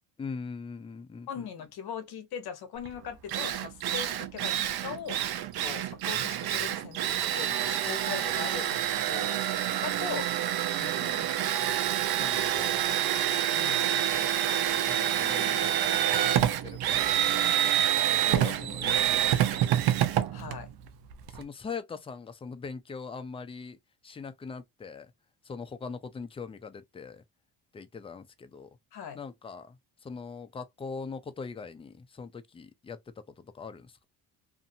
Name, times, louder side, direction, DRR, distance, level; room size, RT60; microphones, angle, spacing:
voice 1, 0.2-1.5 12.2-12.7 14.9-16.3 16.6-19.7 21.3-23.8 24.0-25.1 25.4-27.2 27.7-28.8 29.1-29.8 30.0-33.0 33.5-33.9, left 5 dB, 15° left, 0.3 m, -42 dB
voice 2, 1.3-5.2 5.6-7.0 7.3-8.8 9.1-9.3 9.8-10.3 10.8-11.7 13.4-13.9 18.3-19.2 20.3-20.7 28.9-29.2, left 7 dB, 60° left, 0.9 m, -40 dB
Drill, 2.9-3.0 3.3-21.4, right 11 dB, 60° right, 0.7 m, -27 dB
2.6 x 2.5 x 2.6 m
cardioid pair, 105°, 42 cm